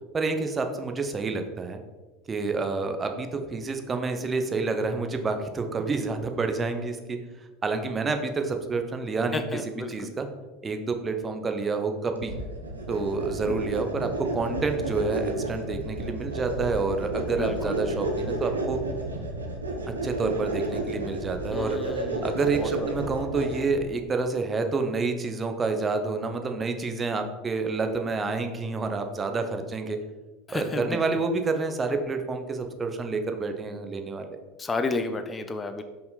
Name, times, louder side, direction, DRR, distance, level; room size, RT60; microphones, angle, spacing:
voice 1, 0.1-1.8 2.3-7.2 7.6-10.3 10.6-12.4 12.9-18.8 20.0-21.8 22.2-30.0 30.5-34.3, right 4 dB, 25° right, 6 dB, 0.7 m, -28 dB
voice 2, 9.3-10.1 17.3-17.8 21.5-22.7 30.5-31.0 34.6-35.8, left 3 dB, 20° left, 8 dB, 0.5 m, -32 dB
sound 1, 12.2-23.9, right 2 dB, 85° right, 0.8 m, -32 dB
5.2 x 4.6 x 4.0 m, 1.2 s
figure-of-eight pair, 80°, 0 cm